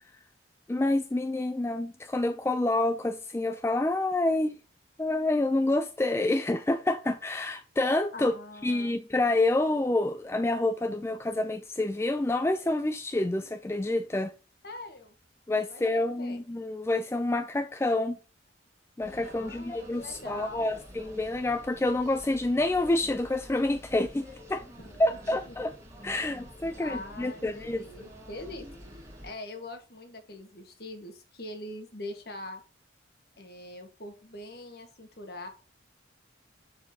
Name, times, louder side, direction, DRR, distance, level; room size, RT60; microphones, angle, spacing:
voice 1, 0.7-4.5 5.0-8.3 8.6-14.3 15.5-18.2 19.0-24.6 25.0-25.7 26.0-27.8, left 2 dB, 15° left, 0.3 m, -28 dB
voice 2, 8.1-8.9 14.6-15.1 15.7-16.4 19.3-20.7 24.8-25.5 26.8-28.7 29.0-32.6 33.4-35.5, left 2 dB, 55° left, 1.5 m, -43 dB
sound 1, 19.0-29.3, equal, 15° right, 1.9 m, -48 dB
7.0 x 6.3 x 2.8 m
head